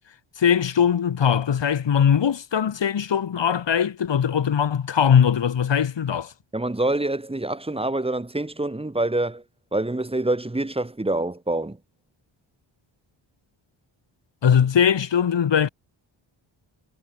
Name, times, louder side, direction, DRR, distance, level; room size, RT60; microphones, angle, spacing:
voice 1, 0.4-6.3 14.4-15.7, left 8 dB, 65° left, 6.3 m, -20 dB
voice 2, 6.5-9.4 9.7-11.8, right 2 dB, 10° right, 3.0 m, -26 dB
wide cardioid pair, 145°, 47 cm